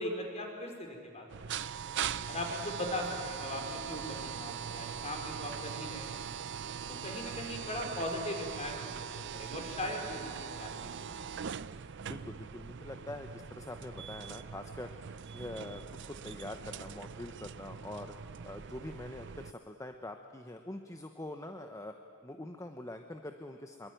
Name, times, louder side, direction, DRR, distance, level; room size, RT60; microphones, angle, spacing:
voice 1, 0.0-1.9 2.3-6.5 7.0-10.9, left 1 dB, 35° left, 2 dB, 4.7 m, -39 dB
sound 1, 1.3-19.5, right 7 dB, 60° right, 0.6 m, -41 dB
voice 2, 12.0-14.9 15.3-22.0 22.2-23.9, left 1 dB, 15° left, 5 dB, 1.0 m, -44 dB
24.0 x 22.5 x 9.3 m, 2.4 s
head